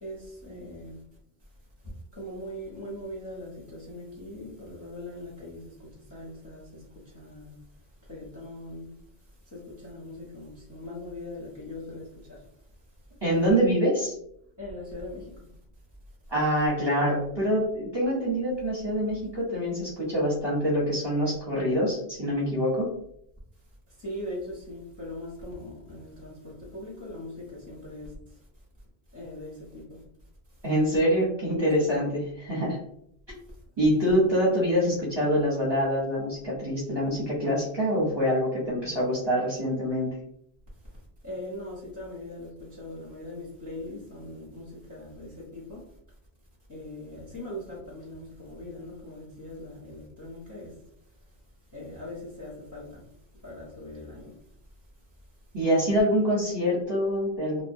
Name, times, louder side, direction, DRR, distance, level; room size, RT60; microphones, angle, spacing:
voice 1, 0.0-1.0 1.8-7.6 8.0-8.9 9.3-12.5 14.6-15.5 24.0-28.4 29.1-30.0 41.2-45.8 46.7-50.8 51.7-53.1 53.4-54.4, left 1 dB, 20° left, 0.6 m, -41 dB
voice 2, 13.2-14.1 16.3-22.9 30.6-32.8 33.8-40.1 55.5-57.6, equal, 25° right, 0.7 m, -25 dB
2.2 x 2.1 x 2.6 m
omnidirectional pair, 1.1 m